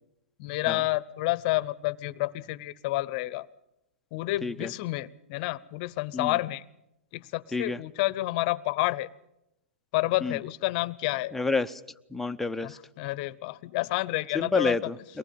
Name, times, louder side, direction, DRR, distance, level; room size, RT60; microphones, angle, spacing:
voice 1, 0.4-3.5 4.1-6.6 7.1-9.1 9.9-11.3 12.6-14.9, left 18 dB, 45° left, 21 dB, 0.9 m, -29 dB
voice 2, 11.3-11.8 12.1-12.8 14.3-15.2, left 3 dB, 5° left, 8 dB, 0.8 m, -29 dB
23.5 x 19.0 x 8.6 m, 0.86 s
hypercardioid pair, 120°, 7 cm